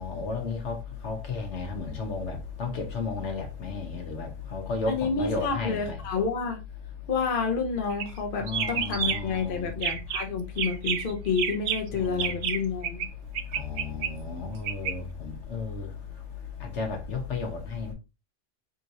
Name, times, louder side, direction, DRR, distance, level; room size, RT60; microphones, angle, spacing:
voice 1, 0.0-6.0 8.4-9.7 11.9-12.3 13.6-15.9 16.6-17.9, left 4 dB, 70° left, 1.3 m, -33 dB
voice 2, 4.9-6.6 7.1-13.1, left 5 dB, 50° left, 0.8 m, -29 dB
sound 1, 7.9-8.2 8.5-9.4 9.7-10.3 10.6-13.1 13.3-14.9, right 8 dB, 75° right, 0.9 m, -30 dB
4.3 x 3.7 x 2.7 m
omnidirectional pair, 1.3 m